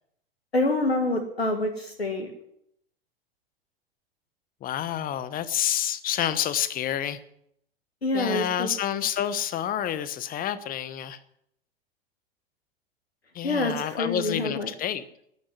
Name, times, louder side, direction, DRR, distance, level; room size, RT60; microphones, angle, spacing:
voice 1, 0.5-2.4 8.0-8.7 13.4-14.7, left 2 dB, 85° left, 5 dB, 1.8 m, -26 dB
voice 2, 4.6-7.2 8.1-11.2 13.3-15.0, left 10 dB, 30° left, 15 dB, 1.1 m, -28 dB
12.0 x 10.5 x 9.5 m, 0.74 s
figure-of-eight pair, 90°, 30 cm